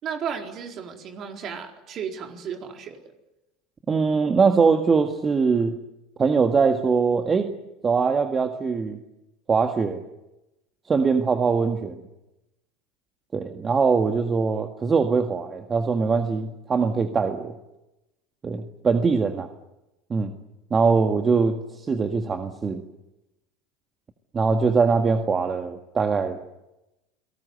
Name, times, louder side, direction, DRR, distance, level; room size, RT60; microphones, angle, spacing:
voice 1, 0.0-3.0, right 7 dB, 45° right, 3 dB, 4.3 m, -34 dB
voice 2, 3.9-5.8 6.2-7.5 7.8-9.0 9.5-10.0 10.9-11.9 13.3-17.5 18.4-19.5 20.1-20.3 20.7-22.8 24.3-26.4, right 5 dB, 30° right, 5 dB, 1.8 m, -22 dB
29.0 x 19.0 x 8.0 m, 0.95 s
hypercardioid pair, 85°, 0 cm